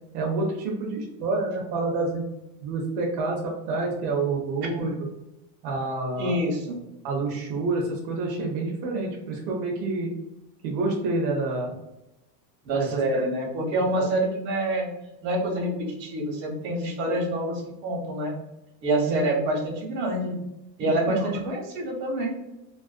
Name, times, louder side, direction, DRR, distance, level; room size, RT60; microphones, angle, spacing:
voice 1, 0.1-2.2 2.6-5.1 5.6-6.4 7.0-10.1 10.6-11.7 12.7-13.2 19.1-19.2 20.8-21.3, right 3 dB, 65° right, -1 dB, 0.7 m, -28 dB
voice 2, 6.2-6.8 12.6-14.9 15.2-18.4 18.8-20.4 20.8-22.3, right 1 dB, 85° right, 0 dB, 1.0 m, -26 dB
2.5 x 2.1 x 2.4 m, 0.92 s
supercardioid pair, 145°, 50 cm